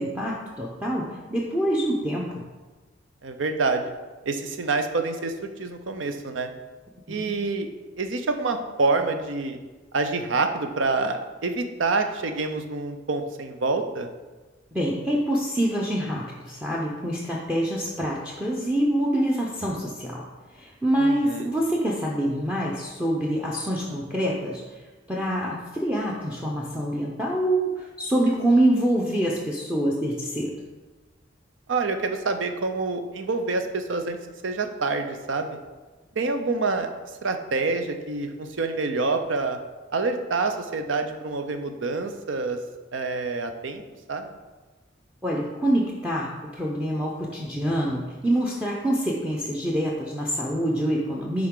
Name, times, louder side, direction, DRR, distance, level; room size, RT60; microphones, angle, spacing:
voice 1, 0.0-2.4 7.1-7.3 14.7-20.3 20.5-30.6 45.2-51.5, right 1 dB, 5° right, -3 dB, 0.6 m, -26 dB
voice 2, 3.2-4.0 4.3-5.3 5.6-6.5 7.1-7.7 8.0-9.6 9.9-14.1 21.0-21.5 31.7-34.2 34.4-35.6 36.2-36.9 37.2-39.6 39.9-42.6 42.9-43.8 44.1-44.3, right 3 dB, 80° right, 7 dB, 0.7 m, -27 dB
10.5 x 3.7 x 3.7 m, 1.3 s
head